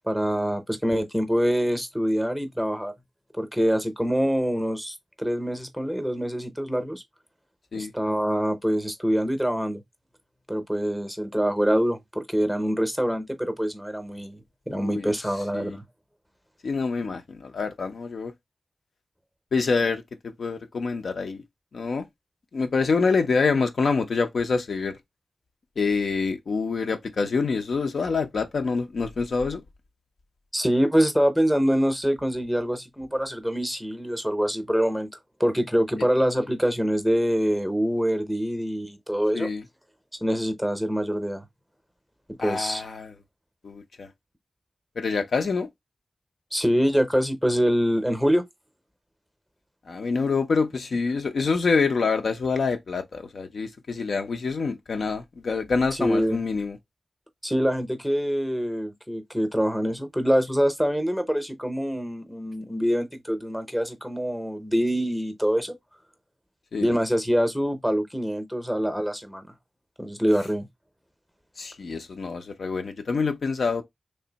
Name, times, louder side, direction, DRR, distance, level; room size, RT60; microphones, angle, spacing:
voice 1, 0.1-2.9 3.4-7.0 7.7-9.8 10.5-14.4 14.7-15.8 30.5-35.1 35.4-39.5 40.2-41.4 42.4-42.8 46.5-48.4 55.9-56.4 57.4-65.8 66.8-69.5 70.0-70.7, equal, ahead, 0.7 m, -25 dB
voice 2, 14.7-15.1 15.5-15.8 16.6-18.3 19.5-21.4 21.7-22.1 22.5-25.0 25.8-29.6 39.3-39.6 42.4-43.1 43.6-44.1 45.0-45.7 49.9-56.8 66.7-66.9 71.6-73.8, left 4 dB, 75° left, 0.6 m, -26 dB
3.3 x 2.6 x 3.9 m
wide cardioid pair, 110°, 0 cm